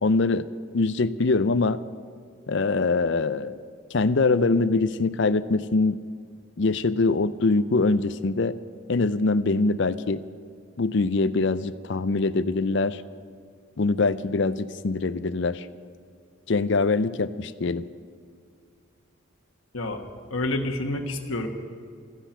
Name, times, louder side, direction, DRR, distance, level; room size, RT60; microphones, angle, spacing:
voice 1, 0.0-0.5 0.7-1.8 2.5-3.6 3.9-6.0 6.6-8.6 8.9-10.2 10.8-13.0 13.8-15.7 16.5-17.9, left 3 dB, 55° left, 14 dB, 0.5 m, -23 dB
voice 2, 20.3-21.5, left 2 dB, 75° left, 3 dB, 1.3 m, -28 dB
14.0 x 10.0 x 9.1 m, 2.2 s
head